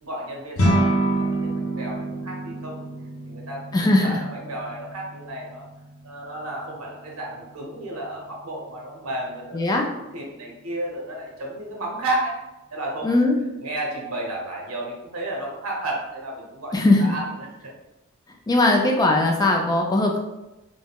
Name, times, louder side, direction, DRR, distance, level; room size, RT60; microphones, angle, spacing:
voice 1, 0.0-2.9 3.3-5.7 6.0-9.7 10.1-12.4 12.7-13.0 13.6-16.7 17.0-17.3, right 1 dB, 80° right, -1 dB, 0.7 m, -32 dB
sound 1, 0.6-10.0, right 1 dB, 75° left, 0.6 m, -29 dB
voice 2, 3.7-4.2 9.5-9.9 13.0-13.4 16.7-17.1 18.5-20.2, left 2 dB, 20° left, 1 dB, 0.3 m, -19 dB
3.5 x 2.0 x 2.2 m, 0.98 s
head